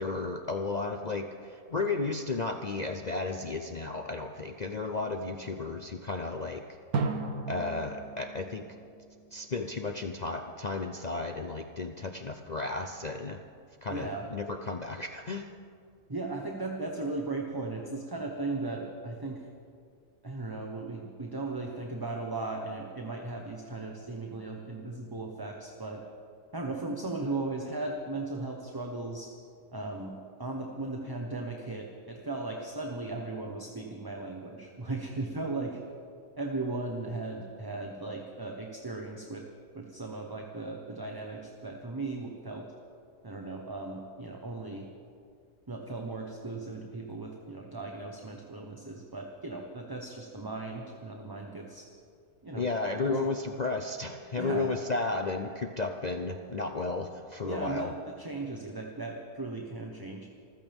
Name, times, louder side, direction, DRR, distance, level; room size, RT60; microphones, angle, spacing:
voice 1, 0.0-6.6 7.5-8.7 9.3-13.4 13.8-15.5 52.5-57.9, left 3 dB, 55° left, 5 dB, 0.4 m, -33 dB
Drum, 6.9-9.6, right 4 dB, 75° right, 1.6 m, -35 dB
voice 2, 13.9-14.3 16.1-19.5 20.2-26.0 26.5-29.3 29.7-35.8 36.4-39.4 39.7-42.6 43.2-44.9 45.7-51.8 52.4-52.7 53.1-53.3 54.4-54.7 57.4-60.3, right 2 dB, 15° right, 1 dB, 1.0 m, -37 dB
26.5 x 15.0 x 3.6 m, 2.2 s
omnidirectional pair, 1.6 m